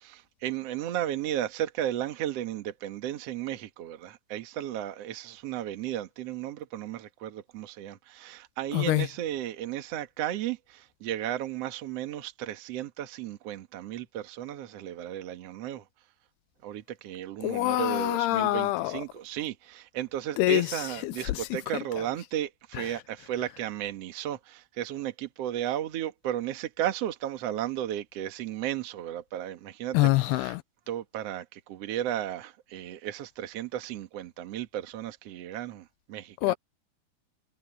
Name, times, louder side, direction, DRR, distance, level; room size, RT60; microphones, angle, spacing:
voice 1, 0.0-15.8 16.6-30.5 30.9-36.5, right 12 dB, 55° right, 1.9 m, -34 dB
voice 2, 8.7-9.1 17.4-19.0 20.4-20.7 21.0-21.4 21.7-21.8 29.9-30.6 36.4-36.5, left 17 dB, 90° left, 2.7 m, -25 dB
omnidirectional pair, 4.5 m